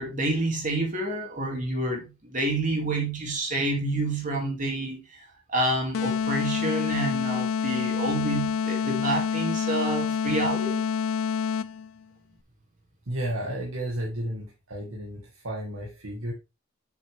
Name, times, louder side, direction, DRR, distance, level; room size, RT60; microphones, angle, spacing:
voice 1, 0.0-5.2 5.5-10.8, right 2 dB, 40° right, 2.4 m, -28 dB
sound 1, 5.9-11.9, left 6 dB, 85° left, 0.4 m, -27 dB
voice 2, 13.1-16.3, right 1 dB, 85° right, 1.9 m, -32 dB
7.3 x 6.1 x 3.3 m
head